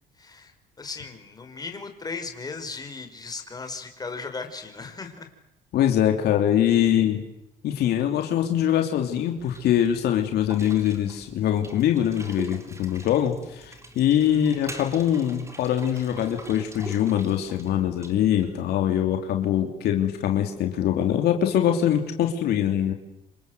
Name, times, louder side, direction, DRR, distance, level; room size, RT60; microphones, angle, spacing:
voice 1, 0.2-5.3 14.2-14.5, left 4 dB, 20° left, 6 dB, 5.1 m, -37 dB
voice 2, 5.7-7.2 7.6-22.9, left 10 dB, 75° left, 4 dB, 3.1 m, -23 dB
sound 1, 9.4-18.6, right 1 dB, 15° right, 3.8 m, -42 dB
27.0 x 27.0 x 8.0 m, 0.84 s
cardioid pair, 110°, 17 cm